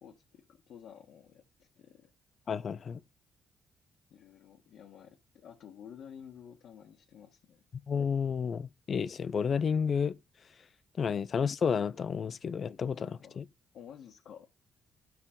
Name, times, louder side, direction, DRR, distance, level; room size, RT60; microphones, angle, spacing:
voice 1, 0.0-2.1 4.1-7.6 12.9-13.4 13.7-14.5, left 8 dB, 70° left, 1.6 m, -52 dB
voice 2, 2.5-3.0 7.9-10.2 11.0-13.1 13.4-13.5, left 6 dB, 50° left, 0.7 m, -31 dB
13.5 x 5.8 x 3.7 m
cardioid pair, 90°, 0 cm